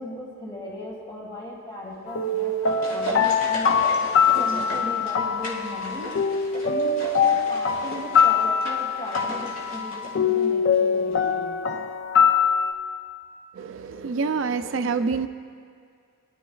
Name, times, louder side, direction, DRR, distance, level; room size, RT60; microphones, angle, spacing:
voice 1, 0.0-3.8 4.3-6.1 6.6-11.6, left 1 dB, 20° left, -3 dB, 1.8 m, -37 dB
sound 1, 2.1-12.7, left 6 dB, 60° left, 0.4 m, -23 dB
sound 2, 2.2-10.9 11.1-11.2, left 1 dB, 90° left, 1.8 m, -36 dB
voice 2, 13.5-15.3, right 4 dB, 65° right, 9 dB, 0.4 m, -26 dB
21.0 x 11.5 x 2.3 m, 2.1 s
head